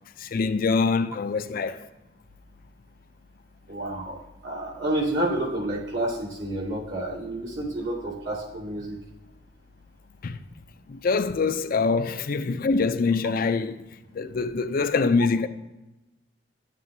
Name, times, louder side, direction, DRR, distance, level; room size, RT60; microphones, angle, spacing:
voice 1, 0.2-1.9 10.2-10.4 10.9-13.9 14.1-15.5, left 4 dB, 50° left, 0.4 m, -24 dB
voice 2, 3.7-9.0, right 1 dB, 70° right, 2.3 m, -29 dB
10.5 x 7.5 x 2.7 m
head